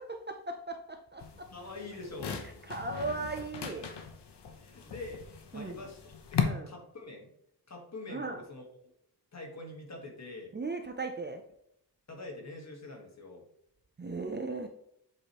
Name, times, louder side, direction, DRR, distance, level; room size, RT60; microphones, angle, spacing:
voice 1, 0.0-1.5 2.6-3.9 5.5-5.9 6.4-6.7 8.1-8.4 10.5-11.4 14.0-14.7, right 3 dB, 25° right, 5 dB, 0.5 m, -37 dB
sound 1, 1.2-6.4, left 7 dB, 85° left, 1.0 m, -38 dB
voice 2, 1.5-2.4 4.5-6.4 6.7-7.3 7.7-8.6 9.3-10.5 12.1-13.5, left 2 dB, 40° left, 1 dB, 1.6 m, -45 dB
7.5 x 4.9 x 3.0 m, 0.76 s
wide cardioid pair, 140°, 40 cm